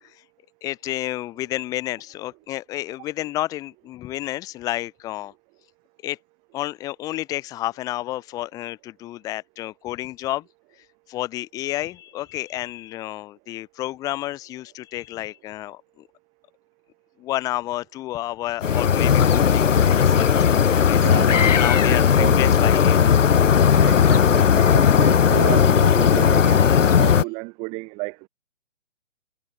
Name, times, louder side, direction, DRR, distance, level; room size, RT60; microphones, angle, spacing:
voice 1, 0.6-5.3 6.0-6.2 6.5-10.4 11.1-16.1 17.2-23.1, left 15 dB, 10° left, 2.9 m, -31 dB
sound 1, 18.6-27.2, left 7 dB, 90° left, 1.0 m, -17 dB
voice 2, 21.0-21.5 21.8-22.4 23.7-28.3, right 29 dB, 15° right, 4.5 m, -31 dB
hypercardioid pair, 175°, 36 cm